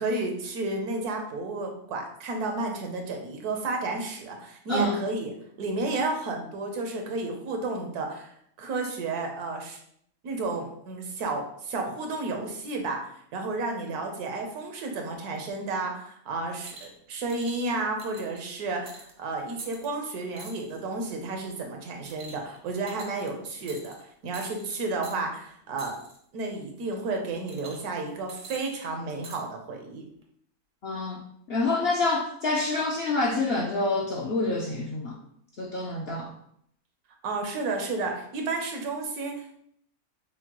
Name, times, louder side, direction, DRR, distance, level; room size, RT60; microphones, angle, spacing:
voice 1, 0.0-5.3 5.6-9.8 10.2-26.0 26.3-30.0 37.2-39.6, right 3 dB, 85° right, 3 dB, 1.3 m, -32 dB
sound 1, 16.6-17.0 17.3-17.6 18.0-18.4 18.9-19.1 19.6-19.9 20.4-20.8 21.2-21.5 22.1-22.6 22.9-23.3 23.7-24.0 24.3-24.6 25.0-25.2 25.8-26.2 27.5-28.0 28.3-29.4 30.2-30.3, right 3 dB, 45° right, 0.5 m, -46 dB
voice 2, 30.8-31.2 31.5-35.2 35.6-36.3, left 2 dB, 65° left, -1 dB, 0.6 m, -27 dB
6.3 x 2.2 x 2.9 m, 0.69 s
omnidirectional pair, 1.6 m